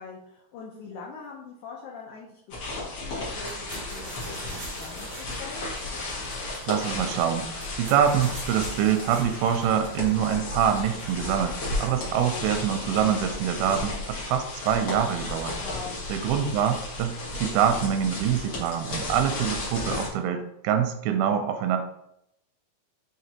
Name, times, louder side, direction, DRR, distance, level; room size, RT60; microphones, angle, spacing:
voice 1, 0.0-5.7 15.6-16.0, left 5 dB, 80° left, -3 dB, 1.8 m, -43 dB
sound 1, 2.5-20.1, left 2 dB, 55° left, 1.5 m, -34 dB
sound 2, 3.4-12.0, right 2 dB, 65° right, 1.2 m, -45 dB
voice 2, 6.3-15.6 16.1-21.8, right 8 dB, 90° right, 7 dB, 2.4 m, -25 dB
5.8 x 3.2 x 2.8 m, 0.76 s
omnidirectional pair, 4.1 m